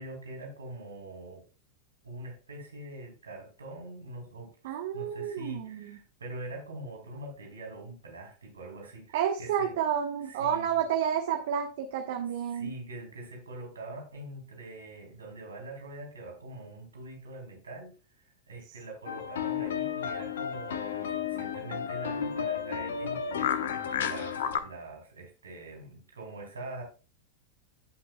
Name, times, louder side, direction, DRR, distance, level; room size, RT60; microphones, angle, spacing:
voice 1, 0.0-1.4 2.0-9.8 10.2-10.9 12.5-26.8, right 2 dB, 70° right, 1 dB, 3.8 m, -44 dB
voice 2, 4.6-5.8 9.1-12.7, right 9 dB, 55° right, 3 dB, 1.2 m, -30 dB
sound 1, 19.1-24.6, left 8 dB, 60° left, 1.1 m, -32 dB
17.0 x 5.9 x 2.3 m, 0.34 s
figure-of-eight pair, 90°, 0 cm